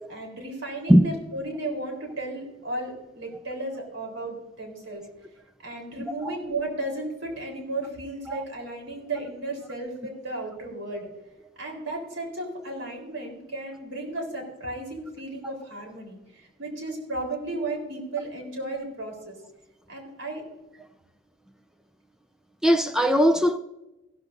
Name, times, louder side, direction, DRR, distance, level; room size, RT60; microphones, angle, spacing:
voice 1, 0.1-5.0 5.6-11.1 11.6-19.3 19.9-20.4, right 2 dB, 80° right, 3.8 m, -34 dB
voice 2, 22.6-23.6, equal, 5° right, 0.4 m, -19 dB
15.0 x 13.5 x 2.6 m
head